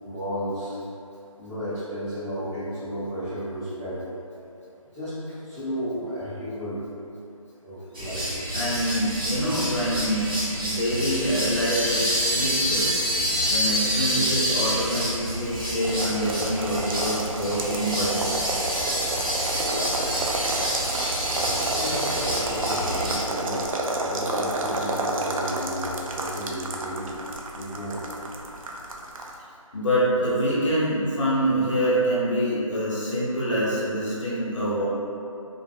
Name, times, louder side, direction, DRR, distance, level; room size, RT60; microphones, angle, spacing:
voice 1, 0.0-0.8 1.4-4.0 4.9-5.2 5.4-6.8 7.6-8.3 13.3-13.5 19.5-20.0 21.3-23.7 24.0-27.1 27.5-28.0 34.1-34.2, equal, 5° left, -27 dB, 1.0 m, -33 dB
sound 1, 7.9-23.2, equal, 40° right, 1.1 m, -27 dB
voice 2, 8.5-12.9 13.5-18.4 29.7-34.9, equal, 60° left, -8 dB, 0.8 m, -25 dB
sound 2, 15.8-29.3, right 2 dB, 70° right, 0.4 m, -30 dB
2.3 x 2.2 x 3.3 m, 2.6 s
figure-of-eight pair, 165°, 18 cm